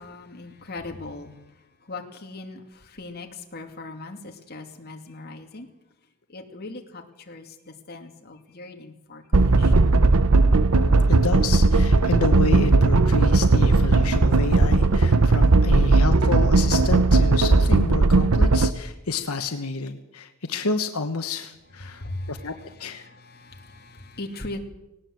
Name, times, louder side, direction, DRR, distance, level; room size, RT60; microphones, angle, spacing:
voice 1, 0.0-5.7 6.3-9.9 15.7-15.8 21.8-24.6, left 2 dB, 45° left, 3 dB, 2.5 m, -39 dB
sound 1, 9.3-18.7, right 3 dB, 80° right, 0.9 m, -17 dB
voice 2, 11.1-22.5 22.8-23.0, left 4 dB, 85° left, 7 dB, 1.3 m, -29 dB
19.0 x 18.0 x 7.8 m, 0.97 s
head